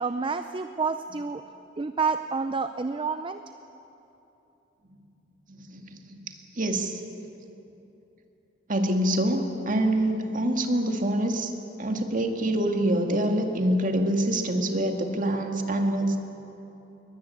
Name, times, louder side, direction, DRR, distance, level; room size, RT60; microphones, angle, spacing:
voice 1, 0.0-1.4 1.8-3.4, right 4 dB, 30° right, 9 dB, 0.5 m, -29 dB
voice 2, 5.5-6.2 6.5-7.0 8.7-11.5 11.8-16.2, right 1 dB, 45° right, 4 dB, 2.1 m, -25 dB
21.5 x 21.0 x 8.6 m, 3.0 s
head